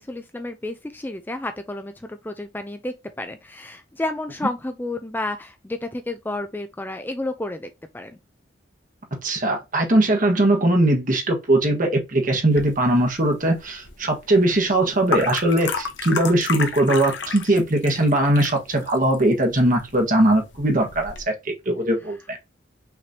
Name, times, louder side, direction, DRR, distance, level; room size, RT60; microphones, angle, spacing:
voice 1, 0.0-8.2, left 2 dB, 10° left, 0.4 m, -31 dB
voice 2, 9.2-21.3 21.6-22.4, right 1 dB, 45° right, 1.4 m, -20 dB
sound 1, 12.5-21.2, left 5 dB, 80° left, 0.9 m, -33 dB
5.8 x 3.3 x 2.8 m
head